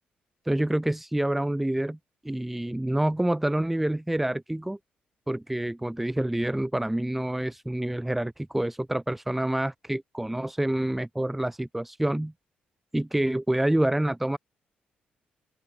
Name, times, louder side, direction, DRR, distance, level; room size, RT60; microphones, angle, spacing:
voice 1, 0.4-2.0 2.2-4.8 5.3-12.3 12.9-14.4, right 1 dB, 5° right, 2.4 m, -27 dB
open air
cardioid pair, 170°, 3 cm